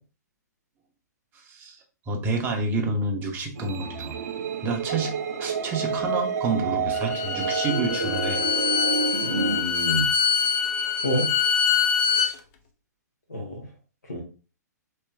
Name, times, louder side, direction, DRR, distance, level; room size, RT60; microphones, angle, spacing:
voice 1, 2.1-4.2 4.6-5.1 5.4-8.5, right 3 dB, 20° right, 3 dB, 0.7 m, -28 dB
sound 1, 3.6-9.6, right 5 dB, 55° right, 0.5 m, -29 dB
Bowed string instrument, 6.9-12.3, left 7 dB, 30° left, 0.5 m, -24 dB
voice 2, 9.2-10.1 11.0-11.3 12.1-12.3 13.3-13.6 14.1-14.2, equal, 70° left, -2 dB, 1.2 m, -28 dB
3.2 x 2.9 x 3.4 m, 0.35 s
figure-of-eight pair, 115°, 10 cm